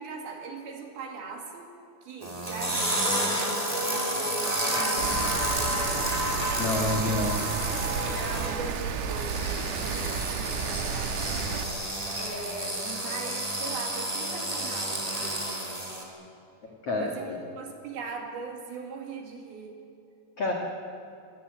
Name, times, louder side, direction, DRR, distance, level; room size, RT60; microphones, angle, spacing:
voice 1, 0.0-1.7 2.0-6.3 8.0-11.5 12.1-15.5 17.0-19.8, right 4 dB, 55° right, 2 dB, 3.7 m, -40 dB
sound 1, 2.2-16.0, right 1 dB, 10° right, 1.9 m, -30 dB
Rain, 5.0-11.6, right 6 dB, 80° right, 4.0 m, -32 dB
voice 2, 6.6-7.5 7.9-8.2 16.6-17.4 20.4-20.5, left 2 dB, 55° left, 0 dB, 1.6 m, -29 dB
24.5 x 18.0 x 9.2 m, 2.5 s
omnidirectional pair, 5.9 m